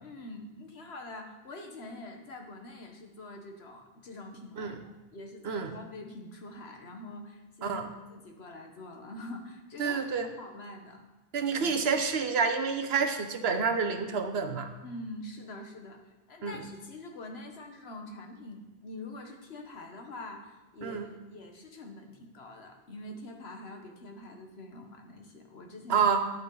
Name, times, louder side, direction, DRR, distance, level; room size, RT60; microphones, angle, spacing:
voice 1, 0.0-7.8 8.1-11.0 11.5-11.7 14.8-26.1, left 2 dB, 80° left, 3 dB, 1.5 m, -45 dB
voice 2, 9.8-10.3 11.3-14.7 16.4-16.5 20.8-21.1 25.9-26.2, right 5 dB, 75° right, 8 dB, 1.1 m, -28 dB
11.0 x 8.4 x 3.9 m, 1.1 s
omnidirectional pair, 1.0 m